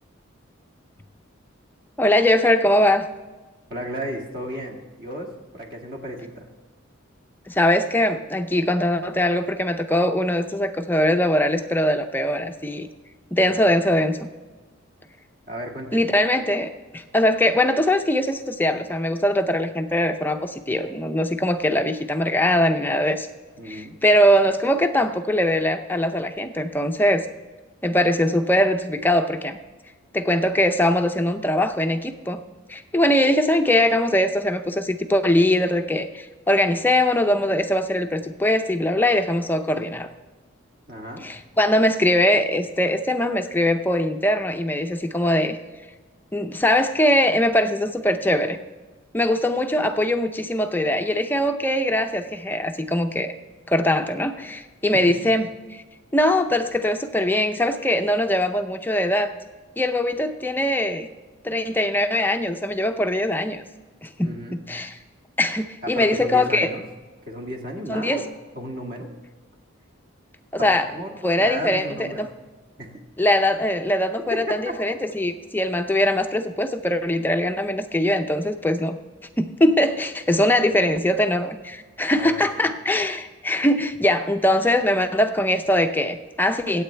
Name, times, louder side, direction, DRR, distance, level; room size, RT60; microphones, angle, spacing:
voice 1, 2.0-3.1 7.5-12.9 13.3-14.3 15.9-23.3 23.6-27.3 27.8-29.6 30.1-32.4 32.7-40.1 41.2-45.6 46.3-48.6 49.1-53.3 53.7-55.8 56.1-59.3 59.8-61.1 61.4-63.6 64.0-64.4 64.7-64.9 65.4-66.7 67.9-68.2 70.5-70.9 71.2-72.3 73.2-79.0 79.4-86.8, left 1 dB, 10° left, 7 dB, 0.5 m, -21 dB
voice 2, 3.7-6.5 13.4-13.5 15.5-16.0 23.6-24.0 40.9-41.3 54.9-55.0 64.2-64.6 65.9-66.8 67.2-68.2 68.6-69.1 70.6-72.3 72.8-73.0 74.5-74.6 80.7-80.8 82.2-82.7, equal, 45° right, 1 dB, 1.9 m, -34 dB
24.5 x 8.5 x 3.3 m, 1.3 s
head